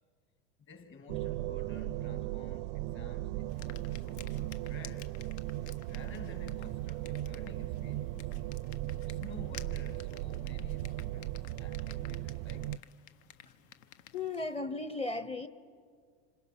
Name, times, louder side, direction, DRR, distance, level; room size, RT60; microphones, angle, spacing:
voice 1, 0.6-5.2 5.9-8.3 9.0-12.9, left 5 dB, 35° left, 2.7 m, -52 dB
sound 1, 1.1-12.8, right 16 dB, 65° right, 0.5 m, -37 dB
sound 2, 3.5-14.6, left 10 dB, 65° left, 1.3 m, -54 dB
voice 2, 14.1-15.5, left 3 dB, 15° left, 1.0 m, -36 dB
27.0 x 26.5 x 6.2 m
supercardioid pair, 110°, 35 cm